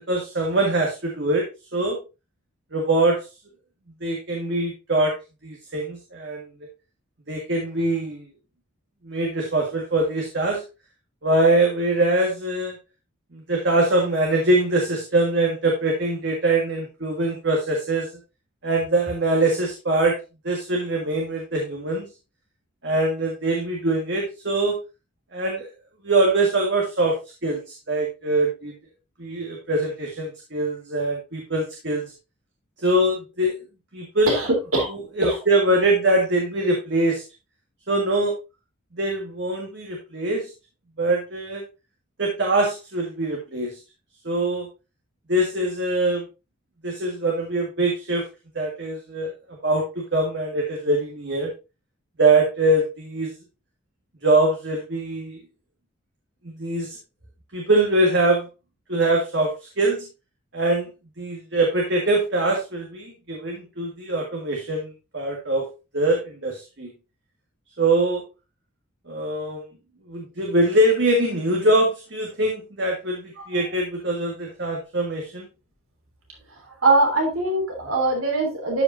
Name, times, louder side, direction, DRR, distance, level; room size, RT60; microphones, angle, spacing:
voice 1, 0.0-2.0 2.7-3.2 4.0-5.1 5.4-6.5 7.3-8.3 9.0-10.6 11.2-12.8 13.3-18.1 18.6-20.2 20.4-22.1 22.8-24.8 25.3-25.7 26.0-27.1 27.4-28.7 29.2-32.0 32.8-33.6 33.9-34.4 34.9-37.2 37.9-38.4 38.9-40.5 41.0-41.6 42.2-43.8 44.2-44.7 45.3-46.3 46.8-48.3 48.5-49.3 49.6-51.5 52.2-53.3 54.2-55.4 56.4-56.9 57.5-58.5 58.9-60.0 60.5-60.9 61.2-65.7 65.9-66.9 67.8-68.2 69.1-69.6 70.1-75.5, right 2 dB, 55° right, 0 dB, 1.7 m, -23 dB
voice 2, 34.3-34.9 35.2-35.4 73.4-73.6 76.7-78.8, right 2 dB, 90° right, 1 dB, 3.2 m, -22 dB
13.0 x 5.1 x 2.7 m, 0.28 s
head